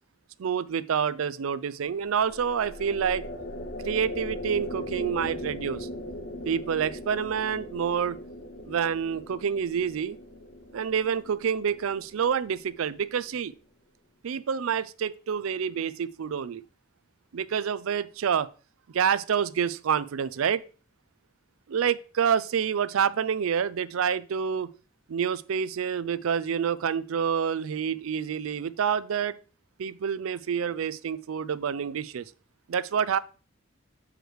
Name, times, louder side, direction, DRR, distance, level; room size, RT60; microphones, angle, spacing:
voice 1, 0.4-3.2 3.8-5.9 6.4-8.2 8.7-10.2 10.7-13.5 14.2-16.6 17.3-18.5 18.9-20.6 21.7-24.7 25.1-29.4 29.8-32.2 32.7-33.2, right 7 dB, 90° right, 0.4 m, -28 dB
sound 1, 1.9-13.3, left 1 dB, 50° left, 0.6 m, -39 dB
7.8 x 4.8 x 3.2 m
head